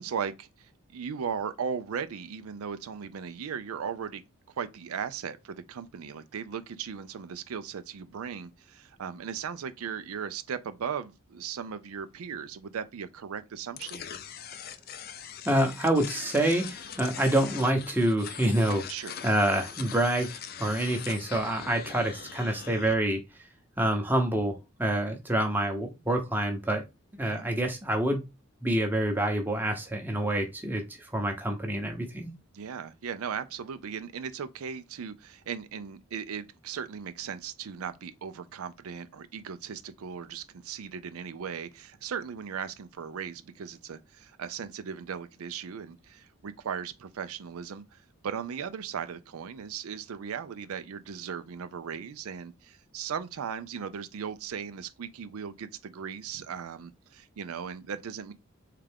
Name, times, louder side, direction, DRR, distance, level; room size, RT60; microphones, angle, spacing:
voice 1, 0.0-4.2 4.6-14.0 18.9-19.2 27.2-27.5 32.5-58.3, right 7 dB, 85° right, 0.4 m, -37 dB
sound 1, 13.8-22.9, left 8 dB, 45° left, 0.4 m, -42 dB
voice 2, 15.4-18.8 19.2-23.2 23.8-26.8 27.2-28.2 28.6-32.3, right 1 dB, 10° right, 0.8 m, -27 dB
3.6 x 3.3 x 3.4 m
head